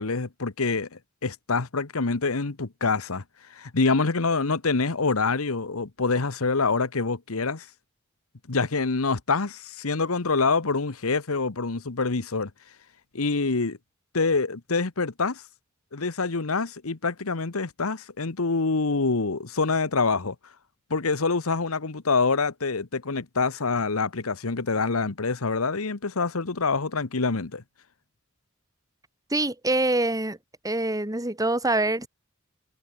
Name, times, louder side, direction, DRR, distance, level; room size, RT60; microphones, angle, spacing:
voice 1, 0.0-3.2 3.5-7.7 8.5-12.5 13.1-13.8 14.1-15.4 15.9-20.3 20.9-27.6, left 4 dB, 80° left, 1.2 m, -26 dB
voice 2, 29.3-30.4 30.6-32.1, right 2 dB, 15° right, 3.0 m, -25 dB
head